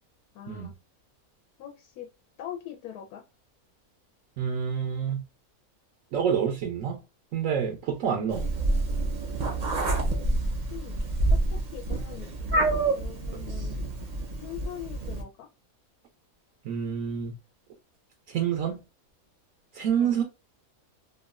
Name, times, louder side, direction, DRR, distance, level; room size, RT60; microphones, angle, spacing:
voice 1, 0.3-0.7 1.6-2.1 2.4-3.2 10.7-11.0 11.3-13.8 14.4-15.5 19.9-20.2, left 11 dB, 85° left, 1.1 m, -42 dB
voice 2, 4.4-5.2 6.1-7.0 7.3-8.5 13.5-13.7 16.6-17.3 18.3-18.8 19.7-20.2, right 8 dB, 70° right, 0.9 m, -28 dB
Meow, 8.3-15.2, right 2 dB, 45° right, 0.6 m, -28 dB
3.0 x 2.3 x 2.2 m
omnidirectional pair, 1.5 m